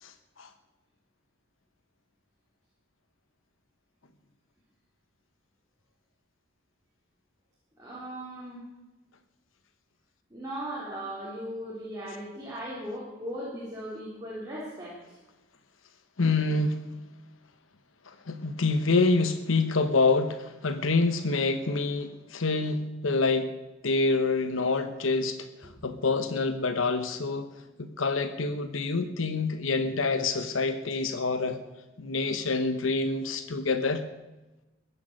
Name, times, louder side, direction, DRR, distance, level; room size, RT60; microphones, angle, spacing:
voice 1, 0.0-0.5 16.2-16.8 18.1-23.5 23.8-27.5 27.8-31.6 32.0-34.0, left 3 dB, 85° left, 0.9 m, -27 dB
voice 2, 7.8-8.6 10.3-15.1, equal, 20° right, 3.9 m, -38 dB
15.5 x 10.5 x 6.4 m
head